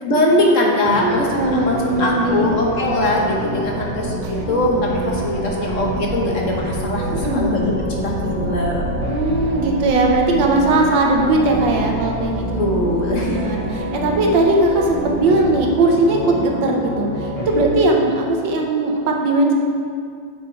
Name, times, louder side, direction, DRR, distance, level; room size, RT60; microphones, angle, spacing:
voice 1, 0.0-9.0 12.6-13.7 17.8-18.0, left 1 dB, 45° left, -1 dB, 1.2 m, -21 dB
sound 1, 0.8-17.6, right 1 dB, 80° left, 2.6 m, -28 dB
sound 2, 0.8-8.3, right 1 dB, 50° right, 1.9 m, -35 dB
voice 2, 1.0-2.7 4.7-4.8 7.1-7.5 9.1-12.7 13.2-19.5, right 2 dB, 70° right, 1 dB, 1.5 m, -19 dB
sound 3, 1.4-15.7, right 1 dB, 90° right, 1.7 m, -33 dB
7.6 x 6.6 x 4.6 m, 2.3 s
omnidirectional pair, 2.2 m